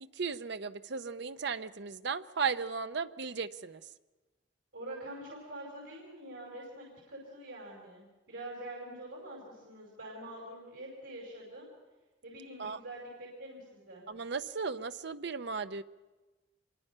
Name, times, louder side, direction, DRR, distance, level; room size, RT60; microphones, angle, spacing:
voice 1, 0.0-3.8 12.6-12.8 14.1-15.8, right 5 dB, 65° right, 11 dB, 0.7 m, -36 dB
voice 2, 4.7-11.7 12.2-14.1, right 1 dB, 85° right, -2 dB, 5.2 m, -45 dB
26.5 x 23.5 x 5.6 m, 1.2 s
head